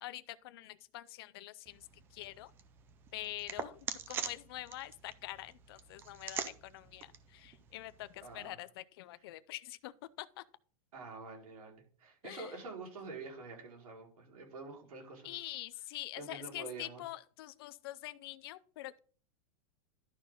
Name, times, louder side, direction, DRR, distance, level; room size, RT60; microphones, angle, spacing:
voice 1, 0.0-1.8 2.1-2.5 3.1-3.8 4.1-9.9 10.2-10.4 12.2-12.5 15.2-19.0, left 16 dB, 40° left, 0.5 m, -45 dB
sound 1, 1.6-8.4, right 7 dB, 10° right, 0.4 m, -45 dB
voice 2, 8.2-8.6 10.9-15.6 16.2-17.1, right 3 dB, 80° right, 4.8 m, -47 dB
11.5 x 5.8 x 3.8 m
supercardioid pair, 175°, 19 cm